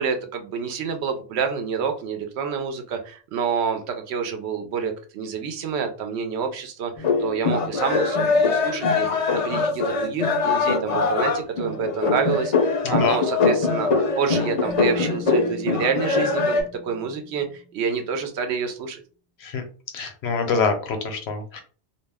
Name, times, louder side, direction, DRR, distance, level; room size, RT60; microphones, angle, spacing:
voice 1, 0.0-19.0, right 6 dB, 85° right, 6 dB, 0.8 m, -28 dB
sound 1, 7.0-16.6, left 4 dB, 45° left, 0.5 m, -22 dB
voice 2, 12.8-13.2 19.4-19.6 19.9-21.6, left 5 dB, 75° left, 6 dB, 0.9 m, -25 dB
Keyboard (musical), 14.6-17.9, left 3 dB, 15° right, 0.6 m, -41 dB
2.4 x 2.1 x 3.3 m, 0.40 s
omnidirectional pair, 1.1 m